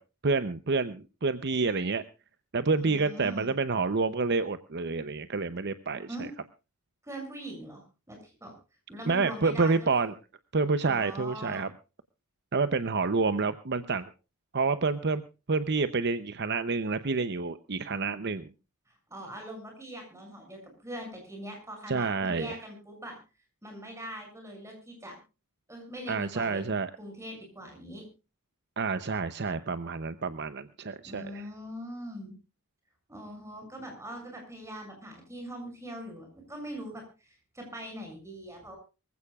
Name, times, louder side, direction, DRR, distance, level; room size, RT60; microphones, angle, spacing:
voice 1, 0.2-2.0 2.5-6.3 9.1-10.1 10.5-11.7 12.5-14.1 14.5-15.2 15.5-18.5 21.9-22.6 26.1-26.9 28.8-31.5, right 4 dB, 50° right, 12 dB, 0.8 m, -28 dB
voice 2, 2.8-3.5 6.1-6.3 7.0-8.5 8.9-10.0 10.9-11.7 19.1-23.2 23.6-25.2 25.7-26.7 27.0-28.0 31.0-32.4 33.1-38.8, equal, 15° right, 3 dB, 6.7 m, -42 dB
24.0 x 15.5 x 2.4 m, 0.31 s
head